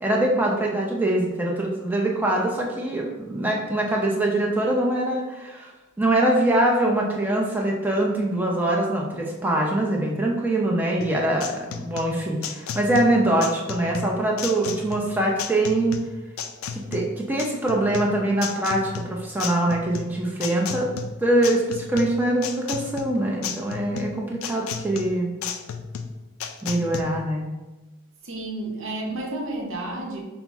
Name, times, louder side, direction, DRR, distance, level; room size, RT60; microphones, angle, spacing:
voice 1, 0.0-5.7 6.0-16.0 16.7-20.9 21.2-25.3 26.6-27.5, right 1 dB, 10° right, -2 dB, 0.5 m, -23 dB
sound 1, 11.0-27.0, left 6 dB, 80° left, 0.3 m, -34 dB
voice 2, 28.2-30.2, right 2 dB, 70° right, 0 dB, 0.7 m, -31 dB
5.7 x 2.0 x 3.4 m, 1.1 s
head